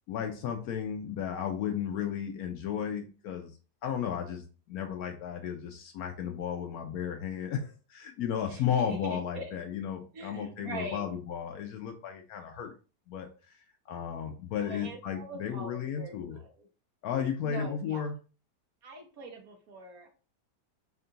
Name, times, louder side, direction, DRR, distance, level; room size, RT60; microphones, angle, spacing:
voice 1, 0.1-3.5 3.8-12.7 13.1-16.4 17.0-18.1, left 8 dB, 70° left, 4 dB, 0.9 m, -34 dB
voice 2, 8.5-9.6 10.1-11.1 14.5-16.7 17.4-18.0 18.8-20.1, right 2 dB, 65° right, 4 dB, 1.1 m, -43 dB
3.7 x 2.3 x 3.8 m, 0.35 s
omnidirectional pair, 1.8 m